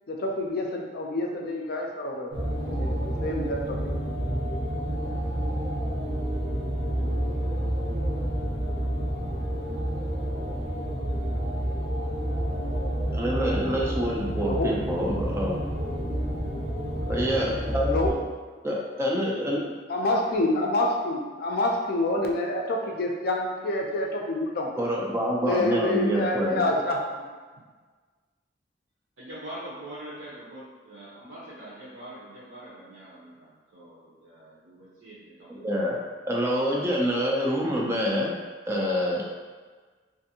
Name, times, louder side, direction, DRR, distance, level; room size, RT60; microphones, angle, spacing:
voice 1, 0.1-2.3 2.6-3.9 14.4-14.7 17.9-18.2 19.9-24.7 25.4-27.0, left 1 dB, 55° left, 0 dB, 0.4 m, -27 dB
sound 1, 2.3-18.1, right 1 dB, 50° right, 0.8 m, -29 dB
voice 2, 13.1-15.7 17.1-18.2 18.6-19.6 24.8-26.6 35.5-36.0 36.3-38.3 38.7-39.2, equal, 15° right, -4 dB, 0.4 m, -27 dB
voice 3, 29.2-33.5 33.7-35.7, right 1 dB, 85° right, -10 dB, 0.7 m, -43 dB
2.5 x 2.5 x 2.7 m, 1.4 s
head